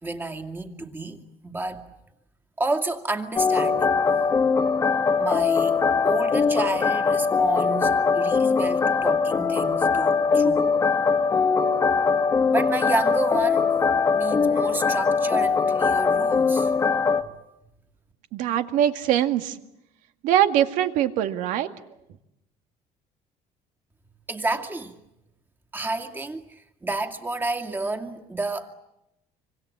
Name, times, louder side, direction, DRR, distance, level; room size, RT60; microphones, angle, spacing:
voice 1, 0.0-1.8 2.6-3.9 5.2-5.8 6.0-10.7 12.5-13.7 14.1-16.7 24.3-25.0 25.7-28.7, right 2 dB, 15° right, 2.4 m, -30 dB
sound 1, 3.4-17.2, left 5 dB, 25° left, 1.5 m, -21 dB
voice 2, 18.3-19.6 20.2-21.7, right 11 dB, 80° right, 2.0 m, -22 dB
26.5 x 25.5 x 8.6 m
cardioid pair, 130°, 13 cm